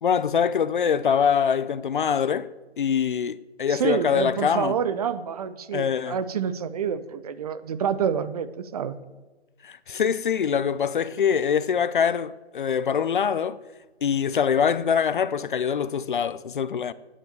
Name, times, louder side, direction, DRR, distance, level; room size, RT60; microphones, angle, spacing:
voice 1, 0.0-2.5 2.8-4.7 5.7-6.2 9.6-13.6 14.0-16.9, left 7 dB, 50° left, 0.7 m, -24 dB
voice 2, 3.7-9.0, right 7 dB, 35° right, 0.9 m, -28 dB
16.0 x 9.9 x 7.0 m
figure-of-eight pair, 140°, 33 cm